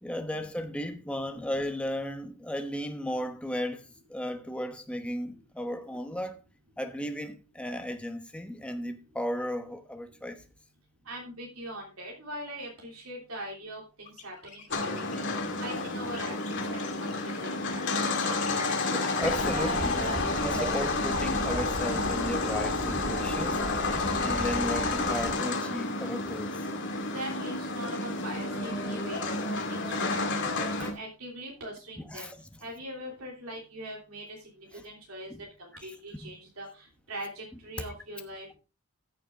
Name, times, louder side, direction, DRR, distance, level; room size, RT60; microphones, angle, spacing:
voice 1, 0.0-6.4 6.8-10.4 18.5-18.6 18.9-20.1 20.4-23.9 24.2-26.7 30.8-30.9 32.1-32.5 34.7-34.8 35.3-35.4 35.8-36.4, equal, 5° left, 1.0 m, -35 dB
voice 2, 11.0-15.2 15.6-17.1 17.4-17.8 27.1-30.2 30.8-32.3 32.6-34.4 34.8-35.3 35.6-38.5, right 1 dB, 70° right, 3.2 m, -41 dB
sound 1, 14.0-19.9, left 5 dB, 35° left, 2.5 m, -45 dB
sound 2, 14.7-30.9, left 3 dB, 55° left, 2.2 m, -30 dB
sound 3, 19.2-25.3, right 2 dB, 20° right, 0.7 m, -36 dB
14.5 x 6.9 x 3.7 m
head